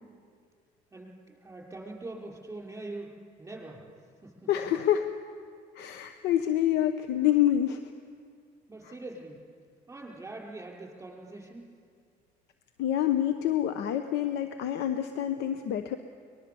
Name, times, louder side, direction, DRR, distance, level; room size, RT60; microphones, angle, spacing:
voice 1, 0.9-3.1 3.4-3.8 4.2-4.5 8.7-9.4 9.9-11.6, right 2 dB, 15° right, -2 dB, 5.3 m, -43 dB
voice 2, 4.5-5.1 5.7-7.9 8.8-8.9 12.8-16.0, left 11 dB, 85° left, 8 dB, 0.9 m, -27 dB
23.0 x 20.5 x 7.0 m, 2.1 s
cardioid pair, 110°, 17 cm